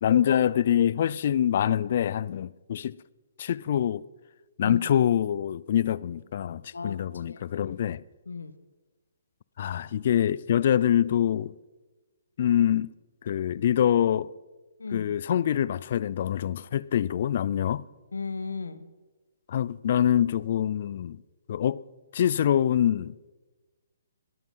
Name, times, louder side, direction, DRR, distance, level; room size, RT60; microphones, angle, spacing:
voice 1, 0.0-3.0 3.4-4.0 4.6-8.0 9.6-11.6 12.4-12.9 13.2-14.3 14.9-17.8 19.5-21.2 21.5-21.8 22.1-23.2, left 10 dB, 50° left, 0.5 m, -25 dB
voice 2, 6.7-7.8 8.3-8.6 14.8-15.1 18.1-18.9, left 4 dB, 90° left, 1.5 m, -36 dB
20.5 x 12.5 x 5.6 m
hypercardioid pair, 145°, 0 cm